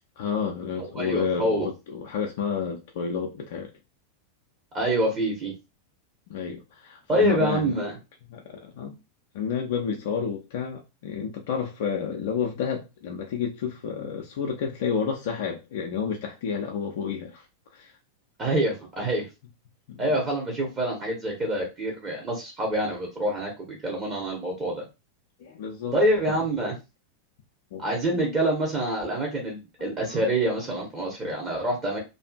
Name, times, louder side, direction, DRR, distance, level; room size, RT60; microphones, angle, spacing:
voice 1, 0.2-3.7 6.3-7.8 8.3-9.0 9.3-17.4 17.7-17.9 19.9-20.1 25.4-26.0 26.3-26.4 27.7-27.8 28.1-28.4 29.8-30.2, left 6 dB, 55° left, 2 dB, 0.4 m, -30 dB
voice 2, 0.9-1.7 4.7-5.5 7.1-7.9 18.4-19.3 20.0-24.8 25.9-26.7 27.8-32.0, right 1 dB, 25° right, -1 dB, 0.9 m, -26 dB
2.6 x 2.4 x 2.3 m, 0.26 s
figure-of-eight pair, 90°, 0 cm